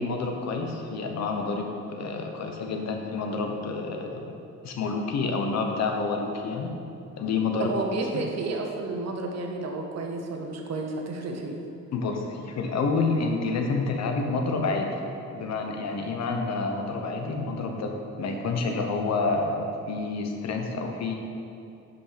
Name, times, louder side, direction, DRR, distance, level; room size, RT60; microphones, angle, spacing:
voice 1, 0.0-4.2 4.6-6.7 7.2-7.7 11.9-14.9 15.3-21.1, left 3 dB, 60° left, 3 dB, 1.0 m, -28 dB
voice 2, 7.6-11.6, right 3 dB, 60° right, 2 dB, 1.0 m, -31 dB
5.6 x 5.4 x 5.1 m, 2.7 s
cardioid pair, 90°, 30 cm